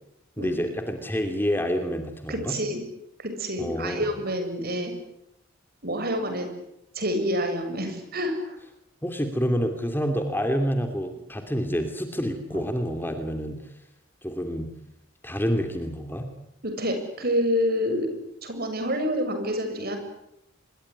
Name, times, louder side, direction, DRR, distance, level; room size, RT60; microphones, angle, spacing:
voice 1, 0.4-2.5 3.6-4.1 9.0-13.6 14.2-14.7 15.2-16.3, equal, 10° left, 6 dB, 2.7 m, -28 dB
voice 2, 2.3-2.8 3.2-4.9 5.8-6.5 7.0-8.6 12.5-12.6 16.6-18.1 18.4-20.0, equal, 45° right, 6 dB, 7.4 m, -27 dB
26.5 x 22.5 x 10.0 m, 0.81 s
head